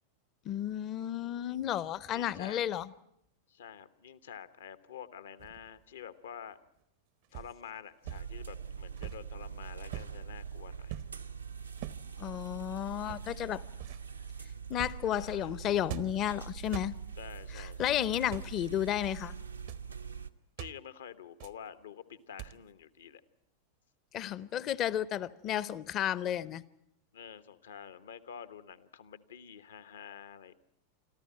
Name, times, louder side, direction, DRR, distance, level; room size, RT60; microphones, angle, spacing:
voice 1, 0.4-2.9 12.2-13.6 14.7-16.9 17.5-19.3 24.1-26.6, left 11 dB, 35° left, 19 dB, 0.7 m, -32 dB
voice 2, 2.1-2.6 3.5-6.6 7.3-11.0 15.1-15.5 17.2-18.3 20.6-23.2 27.1-30.5, left 8 dB, 65° left, 14 dB, 1.0 m, -48 dB
sound 1, 5.4-5.8 7.3-7.6 8.0-8.3 9.0-9.4 9.9-10.2 10.9-11.2 11.8-12.1 13.0-13.4 13.8-14.1 14.7-15.1 15.9-16.3 16.6-17.0 18.1-18.5 19.0-19.2 19.5-19.9 20.6-20.8 21.4-21.7 22.4-22.7, right 16 dB, 50° right, 0.7 m, -43 dB
sound 2, 8.0-20.3, right 6 dB, 80° right, 0.8 m, -44 dB
26.0 x 14.0 x 8.8 m, 0.79 s
figure-of-eight pair, 90°, 0 cm